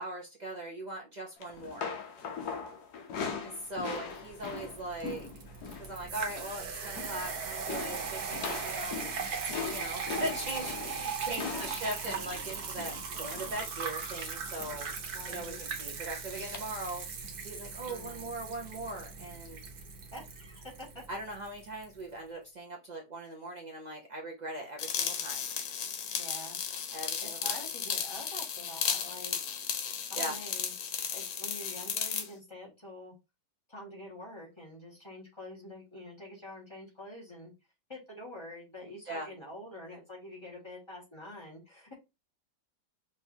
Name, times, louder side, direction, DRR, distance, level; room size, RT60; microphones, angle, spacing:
voice 1, 0.0-1.9 3.4-5.3 5.8-14.9 15.3-17.1 17.4-19.6 21.1-25.5 26.9-27.6 30.1-30.4 39.1-39.3, right 1 dB, 80° right, -1 dB, 0.4 m, -40 dB
sound 1, 1.4-6.0 6.2-6.5 6.8-7.3 7.7-13.7 14.6-15.0 15.3-15.5 16.5-16.6, left 6 dB, 65° left, 1.2 m, -40 dB
voice 2, 3.2-3.5 11.3-11.7 15.1-15.6 17.9-18.3 20.1-21.0 26.2-26.6 27.2-29.4 30.1-30.7 31.1-33.1 33.7-37.5 37.9-41.9, left 1 dB, 15° left, -4 dB, 1.6 m, -46 dB
sound 2, 3.9-21.9, right 5 dB, 60° right, 1.4 m, -39 dB
sound 3, 24.8-32.3, left 7 dB, 80° left, 1.5 m, -34 dB
5.0 x 3.1 x 2.7 m, 0.26 s
omnidirectional pair, 2.0 m